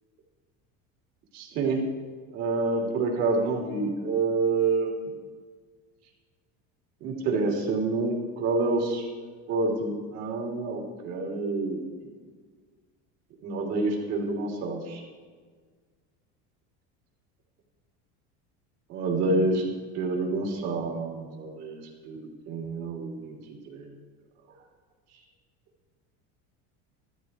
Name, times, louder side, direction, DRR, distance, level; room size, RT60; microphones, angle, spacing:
voice 1, 1.3-1.8 2.3-5.1 7.0-9.1 9.5-11.8 13.4-15.0 18.9-19.7 19.9-22.2 22.5-23.4 23.7-24.0, right 3 dB, 50° right, 0 dB, 3.4 m, -28 dB
15.0 x 14.0 x 4.6 m, 1.5 s
cardioid pair, 175°, 34 cm